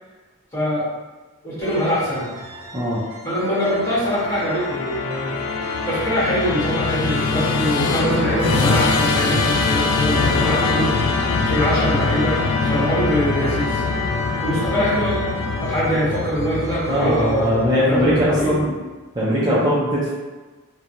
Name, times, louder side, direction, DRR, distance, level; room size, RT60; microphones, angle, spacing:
voice 1, 0.5-0.8 1.4-2.3 3.2-5.4 5.8-13.8 14.4-15.2 15.6-18.5 19.5-19.7, equal, 15° left, -10 dB, 1.2 m, -23 dB
sound 1, 1.6-17.6, equal, 50° right, 0.7 m, -38 dB
Musical instrument, 3.5-18.8, left 4 dB, 75° left, 0.3 m, -23 dB
voice 2, 16.9-18.7 19.1-20.1, equal, 20° right, -9 dB, 0.5 m, -20 dB
3.1 x 2.1 x 2.6 m, 1.3 s
head